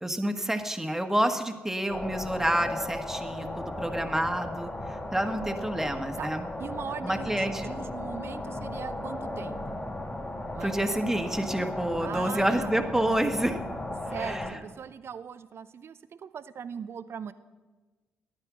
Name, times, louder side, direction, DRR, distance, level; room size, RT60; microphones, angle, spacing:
voice 1, 0.0-6.5 7.0-7.7 10.6-13.6 14.2-14.6, right 1 dB, 5° right, 6 dB, 1.6 m, -28 dB
sound 1, 1.9-14.5, left 1 dB, 25° left, 2.9 m, -36 dB
voice 2, 6.6-9.8 10.5-10.9 12.0-12.7 14.1-17.3, right 7 dB, 50° right, 13 dB, 0.6 m, -40 dB
14.0 x 10.5 x 6.2 m, 1.3 s
figure-of-eight pair, 40°, 6 cm